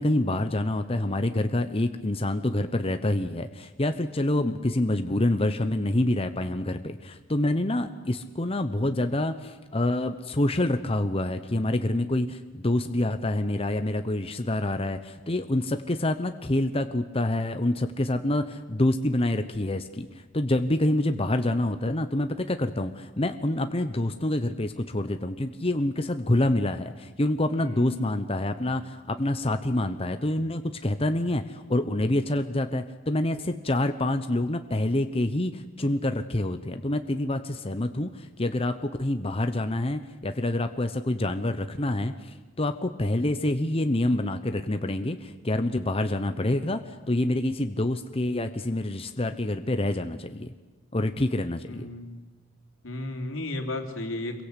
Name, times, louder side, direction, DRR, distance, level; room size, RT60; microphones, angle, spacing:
voice 1, 0.0-20.1 20.3-46.8 47.1-50.5 50.9-51.9, left 1 dB, 30° left, 8 dB, 1.0 m, -27 dB
voice 2, 27.6-28.1 51.7-52.2 52.8-54.4, left 1 dB, 85° left, 4 dB, 3.4 m, -34 dB
26.5 x 23.0 x 8.3 m, 1.2 s
head